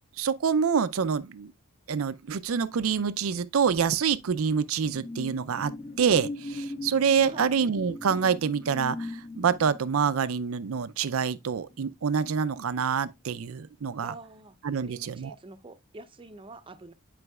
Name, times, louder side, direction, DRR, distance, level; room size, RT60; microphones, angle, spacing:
voice 1, 0.2-1.5 1.9-5.7 6.0-14.1 14.6-15.3, right 6 dB, 70° right, 0.5 m, -26 dB
sound 1, 4.0-12.9 13.3-13.5, left 2 dB, 40° left, 1.3 m, -41 dB
voice 2, 14.0-16.9, right 2 dB, 25° right, 0.6 m, -46 dB
11.0 x 5.1 x 2.3 m
head